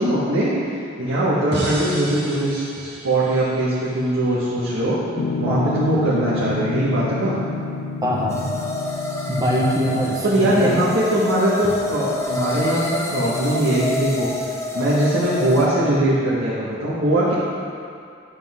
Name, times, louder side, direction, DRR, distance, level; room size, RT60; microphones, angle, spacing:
voice 1, 0.0-5.0 5.4-7.3 10.2-14.3 14.7-17.3, right 1 dB, 80° right, -9 dB, 1.7 m, -21 dB
sound 1, 1.5-4.6, right 1 dB, 55° right, 2.1 m, -33 dB
Piano, 5.2-10.3, left 3 dB, 55° left, 0.4 m, -29 dB
voice 2, 5.5-5.9 8.0-8.4 9.3-10.7, equal, 20° right, -3 dB, 1.3 m, -23 dB
sound 2, 8.3-15.7, left 2 dB, 15° left, 0.9 m, -28 dB
10.5 x 8.0 x 3.7 m, 2.4 s
head